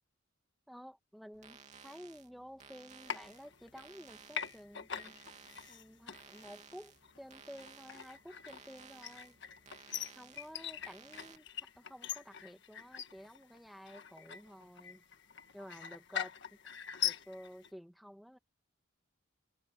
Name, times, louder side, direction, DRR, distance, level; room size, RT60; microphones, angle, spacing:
voice 1, 0.7-9.4 10.1-15.0 15.5-16.3 16.6-18.4, equal, ahead, 2.1 m, -52 dB
sound 1, 1.3-11.4, right 5 dB, 35° right, 2.8 m, -57 dB
sound 2, 3.1-4.0 4.3-17.7, left 9 dB, 60° left, 1.7 m, -43 dB
head